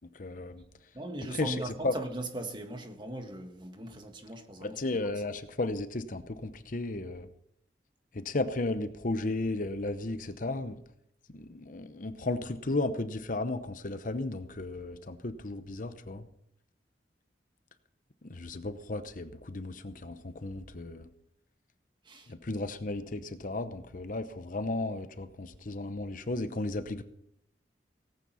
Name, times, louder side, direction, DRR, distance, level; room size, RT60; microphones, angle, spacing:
voice 1, 0.1-0.6 1.3-2.0 4.6-7.3 8.1-10.8 11.3-16.3 18.2-21.1 22.3-27.0, left 2 dB, 45° left, 0.8 m, -34 dB
voice 2, 0.9-4.8 22.0-22.3, right 1 dB, 25° right, 1.6 m, -39 dB
18.5 x 9.1 x 5.6 m
head